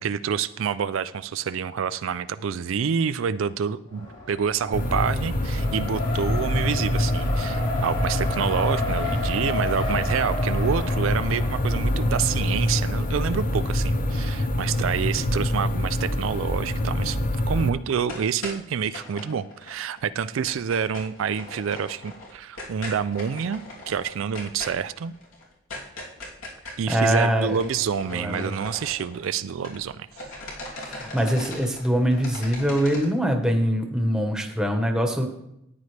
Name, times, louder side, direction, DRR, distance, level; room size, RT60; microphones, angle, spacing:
voice 1, 0.0-25.1 26.8-30.1, right 7 dB, 75° right, 13 dB, 0.4 m, -28 dB
Race car auto racing, 3.9-14.9, left 2 dB, 60° left, 3.4 m, -34 dB
sound 1, 4.7-17.7, left 1 dB, 40° left, 0.7 m, -25 dB
sound 2, 17.9-20.0 20.2-29.9 30.1-33.0, left 2 dB, 85° left, 3.1 m, -39 dB
voice 2, 26.9-27.6 28.1-28.5 30.7-35.3, equal, 5° right, 3 dB, 1.2 m, -23 dB
13.5 x 9.6 x 3.3 m, 0.80 s
head